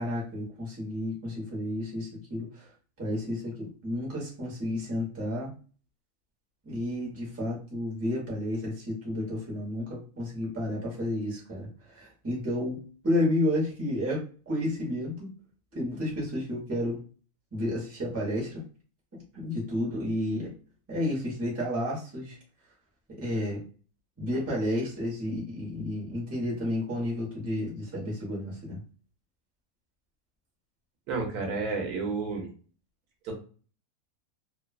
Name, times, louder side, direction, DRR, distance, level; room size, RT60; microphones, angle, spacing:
voice 1, 0.0-2.7 3.0-5.5 6.6-15.3 15.7-17.0 17.5-18.6 19.3-20.5 20.9-22.4 23.1-23.6 24.2-28.8, left 1 dB, 10° right, -5 dB, 0.7 m, -31 dB
voice 2, 31.1-32.5 33.2-33.4, right 4 dB, 80° right, 2 dB, 1.2 m, -31 dB
3.0 x 2.2 x 2.3 m, 0.39 s
omnidirectional pair, 1.6 m